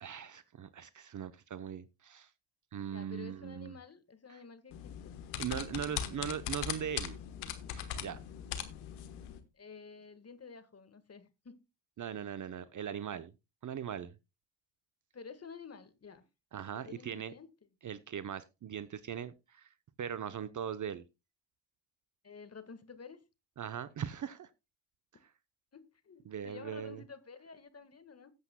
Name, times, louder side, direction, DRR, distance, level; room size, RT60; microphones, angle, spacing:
voice 1, 0.0-2.3 2.7-3.8 4.3-4.4 5.4-7.2 7.7-8.2 12.0-13.3 13.6-14.2 16.5-17.3 17.8-21.0 23.6-24.5 26.3-27.0, right 8 dB, 40° right, 0.8 m, -40 dB
voice 2, 2.9-5.2 5.7-6.4 9.5-11.7 15.1-16.3 16.7-17.5 22.2-23.2 25.7-28.3, left 5 dB, 30° left, 1.6 m, -51 dB
sound 1, 4.7-9.4, left 10 dB, 80° left, 1.3 m, -40 dB
17.0 x 8.0 x 2.2 m
hypercardioid pair, 55°, 49 cm